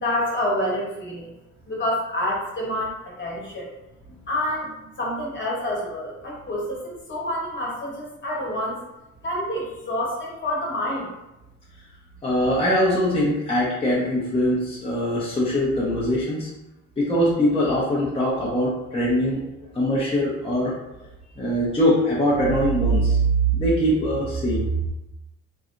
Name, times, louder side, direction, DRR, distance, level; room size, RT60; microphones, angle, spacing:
voice 1, 0.0-1.3 1.7-3.7 4.3-8.8 9.2-11.1, left 1 dB, 40° left, -4 dB, 1.2 m, -28 dB
voice 2, 12.2-16.5 17.0-19.4 19.7-20.7 21.4-24.7, equal, 20° left, -7 dB, 0.7 m, -22 dB
3.1 x 2.6 x 2.5 m, 0.93 s
cardioid pair, 90°, 30 cm